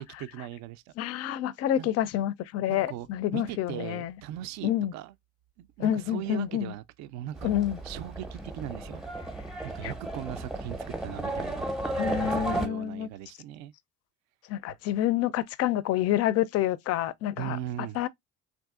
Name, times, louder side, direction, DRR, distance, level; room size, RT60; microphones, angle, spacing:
voice 1, 0.0-0.9 1.8-1.9 2.7-3.1 3.3-5.1 5.6-7.5 7.8-9.0 9.6-11.7 12.1-13.7 17.4-18.0, right 13 dB, 55° right, 0.4 m, -39 dB
voice 2, 1.0-4.1 4.6-4.9 5.8-6.7 7.4-7.8 9.6-9.9 11.9-13.1 14.5-17.6 18.0-18.1, left 12 dB, 50° left, 0.4 m, -28 dB
Livestock farm animals working animals, 7.4-12.7, right 2 dB, ahead, 0.7 m, -34 dB
3.6 x 2.5 x 2.3 m
supercardioid pair, 90°, 33 cm